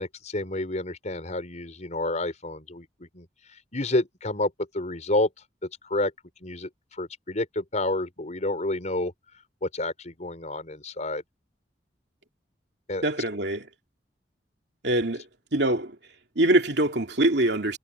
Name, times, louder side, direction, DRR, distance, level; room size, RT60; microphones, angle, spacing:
voice 1, 0.0-3.3 3.7-5.3 5.8-6.1 6.4-9.1 9.6-11.2 12.9-13.0, left 2 dB, 45° left, 4.9 m, -29 dB
voice 2, 13.0-13.7 14.8-15.2 15.5-16.0 16.3-17.8, right 1 dB, 70° right, 2.9 m, -23 dB
head